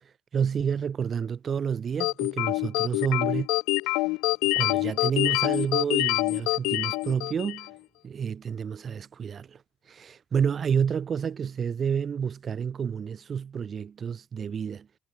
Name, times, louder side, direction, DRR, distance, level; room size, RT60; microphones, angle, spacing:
voice 1, 0.3-3.5 3.8-4.1 4.4-7.7 8.0-9.6 9.9-14.9, right 7 dB, 45° right, 2.2 m, -29 dB
sound 1, 2.0-7.7, left 24 dB, 85° left, 0.5 m, -26 dB
supercardioid pair, 70°, 0 cm